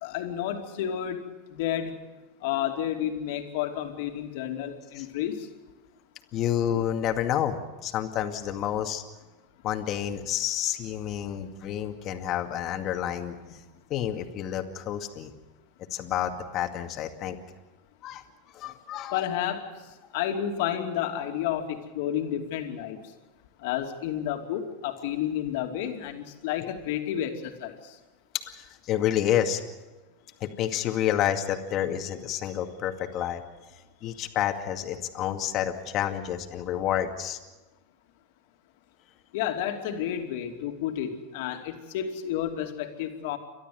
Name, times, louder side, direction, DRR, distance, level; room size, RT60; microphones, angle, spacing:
voice 1, 0.0-1.2 1.5-1.9 2.4-5.5 19.1-19.7 20.1-23.0 23.6-27.8 39.3-43.4, left 10 dB, 70° left, 3 dB, 2.8 m, -31 dB
voice 2, 6.3-9.0 9.6-13.3 13.9-15.3 15.9-17.4 18.0-18.2 18.5-19.2 28.6-29.6 30.4-33.4 34.0-37.4, left 10 dB, 45° left, 5 dB, 2.2 m, -29 dB
29.5 x 12.5 x 7.9 m, 1.2 s
supercardioid pair, 120°, 0 cm